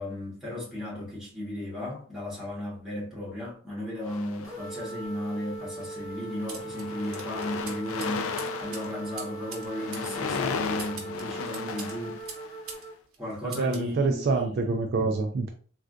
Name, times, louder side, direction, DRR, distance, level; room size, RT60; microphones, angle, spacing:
voice 1, 0.0-12.2 13.2-14.7, left 1 dB, 5° right, 1.3 m, -35 dB
sound 1, 4.0-5.0 5.8-6.0 6.3-12.8, left 5 dB, 75° left, 0.3 m, -36 dB
sound 2, 4.4-12.9, right 2 dB, 35° right, 1.0 m, -40 dB
sound 3, 6.5-12.9 13.1-13.9, right 5 dB, 90° right, 0.9 m, -44 dB
voice 2, 13.4-15.5, right 3 dB, 50° right, 0.3 m, -26 dB
3.3 x 2.4 x 2.5 m
head